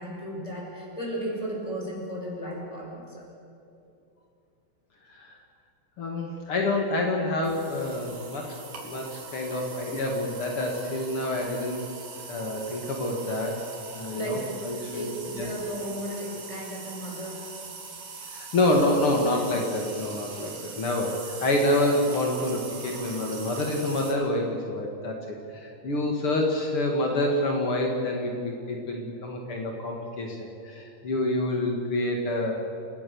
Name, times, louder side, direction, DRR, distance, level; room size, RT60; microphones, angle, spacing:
voice 1, 0.0-3.3 14.1-14.5 14.8-17.5, right 1 dB, 5° left, -2 dB, 5.7 m, -35 dB
voice 2, 6.0-8.6 8.8-11.8 12.3-13.6 13.9-15.1 15.4-15.5 18.3-32.5, left 1 dB, 70° left, 1 dB, 1.3 m, -27 dB
sound 1, 7.4-24.1, right 5 dB, 50° right, 3.9 m, -42 dB
29.0 x 18.0 x 7.0 m, 2.7 s
omnidirectional pair, 5.9 m